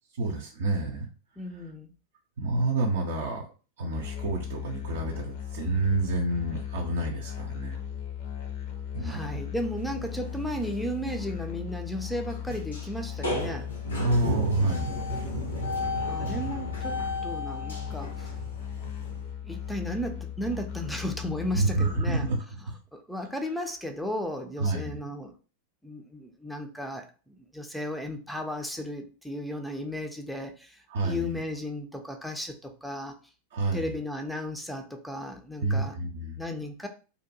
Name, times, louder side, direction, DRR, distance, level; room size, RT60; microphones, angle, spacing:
voice 1, 0.2-1.1 2.4-3.5 3.8-7.8 8.9-9.4 14.0-15.0 21.5-22.4 24.6-25.0 30.9-31.4 33.5-33.9 35.6-36.4, right 2 dB, 60° right, 1 dB, 0.4 m, -28 dB
voice 2, 1.4-1.9 9.0-13.7 16.1-18.3 19.4-22.3 22.9-25.3 25.8-33.2 33.7-36.0 36.4-36.9, left 1 dB, ahead, 4 dB, 0.4 m, -35 dB
Musical instrument, 3.9-22.3, left 9 dB, 45° left, 0.6 m, -37 dB
sound 1, 10.0-10.2 10.5-10.6 11.0-11.1 12.5-12.9 13.2-19.3, equal, 75° left, 0.9 m, -32 dB
2.6 x 2.1 x 2.7 m, 0.36 s
figure-of-eight pair, 90°, 0 cm